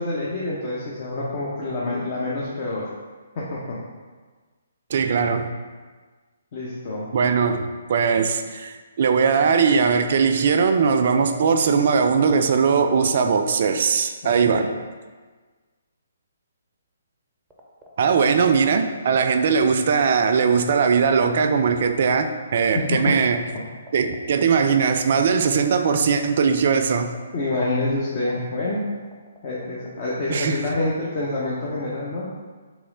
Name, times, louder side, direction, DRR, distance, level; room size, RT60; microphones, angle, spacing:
voice 1, 0.0-2.8 3.3-3.6 6.5-7.1 14.2-14.7 22.7-23.1 27.3-28.8 29.4-32.2, left 2 dB, 40° left, -6 dB, 0.7 m, -27 dB
voice 2, 4.9-5.5 7.1-14.7 18.0-23.4 23.9-27.1 30.3-30.6, right 5 dB, 50° right, 7 dB, 0.3 m, -20 dB
sound 1, 17.5-30.9, right 3 dB, 5° right, 0.6 m, -45 dB
3.1 x 3.0 x 3.7 m, 1.4 s
figure-of-eight pair, 135°, 0 cm